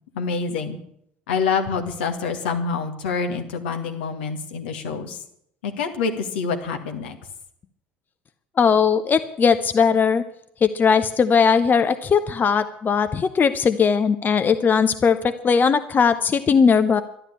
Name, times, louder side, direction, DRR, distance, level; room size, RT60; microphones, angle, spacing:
voice 1, 0.1-0.8 1.3-5.2 5.6-7.2, left 5 dB, 70° left, 4 dB, 2.0 m, -26 dB
voice 2, 8.6-10.2 10.6-17.0, left 6 dB, 30° left, 11 dB, 0.8 m, -19 dB
12.5 x 11.5 x 8.6 m, 0.71 s
figure-of-eight pair, 60°, 6 cm